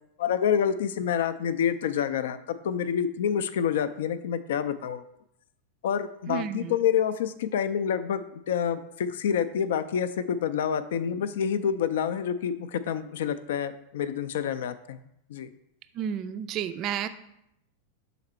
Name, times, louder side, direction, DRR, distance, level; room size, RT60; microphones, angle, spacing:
voice 1, 0.2-2.4 2.6-5.0 5.8-15.0 15.3-15.5, left 8 dB, 60° left, 13 dB, 0.4 m, -27 dB
voice 2, 6.3-6.7 16.0-17.1, right 9 dB, 35° right, 10 dB, 0.3 m, -31 dB
6.5 x 4.0 x 4.2 m, 0.79 s
figure-of-eight pair, 90°, 0 cm